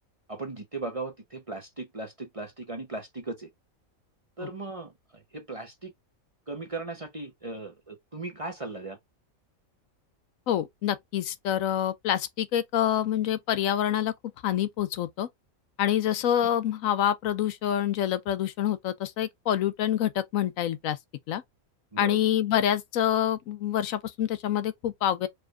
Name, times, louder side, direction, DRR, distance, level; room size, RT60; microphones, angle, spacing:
voice 1, 0.3-3.5 4.4-5.9 6.5-9.0 21.9-22.2, right 3 dB, 30° right, 0.8 m, -37 dB
voice 2, 10.5-14.1 14.4-15.3 15.8-21.0 21.3-21.4 22.0-25.3, left 11 dB, 75° left, 1.0 m, -26 dB
4.8 x 3.1 x 2.4 m
omnidirectional pair, 1.5 m